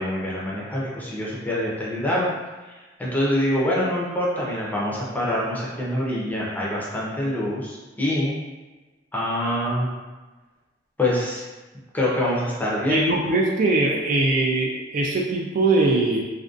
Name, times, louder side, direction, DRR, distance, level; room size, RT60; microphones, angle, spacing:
voice 1, 0.0-2.3 3.0-8.4 9.1-9.9 11.0-11.4 11.9-13.0, left 1 dB, 10° left, -6 dB, 0.5 m, -25 dB
voice 2, 12.9-16.2, right 2 dB, 45° right, -1 dB, 0.3 m, -21 dB
2.5 x 2.2 x 2.4 m, 1.2 s
head